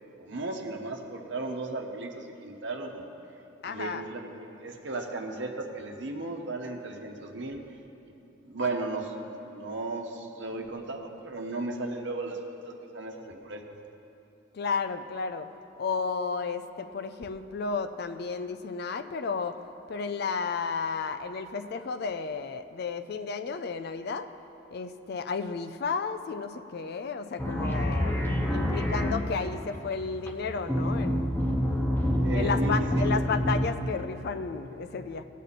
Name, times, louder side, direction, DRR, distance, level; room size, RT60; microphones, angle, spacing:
voice 1, 0.2-3.1 3.6-7.6 8.4-12.4 12.6-13.8 32.2-33.1, right 2 dB, 70° right, 2 dB, 1.1 m, -35 dB
voice 2, 3.6-4.1 14.5-15.5 15.8-19.6 19.9-24.3 24.7-28.2 28.5-31.4 32.3-35.2, left 5 dB, 55° left, 10 dB, 0.4 m, -32 dB
sound 1, 27.4-33.7, equal, 10° left, 0.9 m, -28 dB
17.5 x 8.3 x 4.2 m, 2.9 s
head